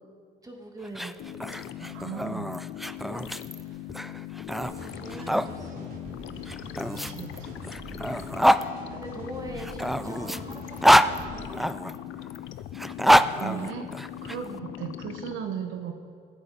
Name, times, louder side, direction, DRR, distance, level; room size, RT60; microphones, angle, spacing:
voice 1, 0.4-1.2 3.0-3.9 4.4-6.4 6.9-7.3 7.8-8.1 8.5-12.2 14.4-14.7, right 1 dB, 20° right, 1 dB, 2.3 m, -44 dB
sound 1, 0.8-5.5 6.5-8.7 9.6-11.9 12.7-14.4, equal, ahead, 0.3 m, -25 dB
sound 2, 1.2-15.4, left 12 dB, 80° left, 0.6 m, -40 dB
voice 2, 1.8-2.5 6.9-7.5 13.4-13.9 14.2-15.9, right 8 dB, 85° right, 6 dB, 1.0 m, -36 dB
sound 3, 4.6-11.5, right 1 dB, 50° right, 3.1 m, -44 dB
16.5 x 8.8 x 5.3 m, 2.3 s
cardioid pair, 90°, 20 cm